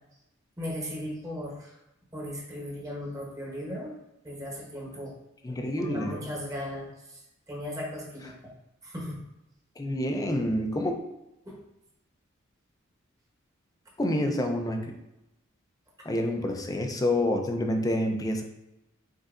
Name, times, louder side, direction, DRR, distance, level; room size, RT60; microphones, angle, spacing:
voice 1, 0.6-1.7 2.1-3.9 4.2-5.1 5.8-6.8 7.5-8.3 8.8-9.2 11.5-11.6, equal, 15° right, -2 dB, 1.0 m, -36 dB
voice 2, 5.4-6.3 8.2-8.3 9.8-11.0 14.0-14.9 16.0-18.4, left 1 dB, 20° left, 4 dB, 0.4 m, -28 dB
5.0 x 3.9 x 2.5 m, 0.89 s
head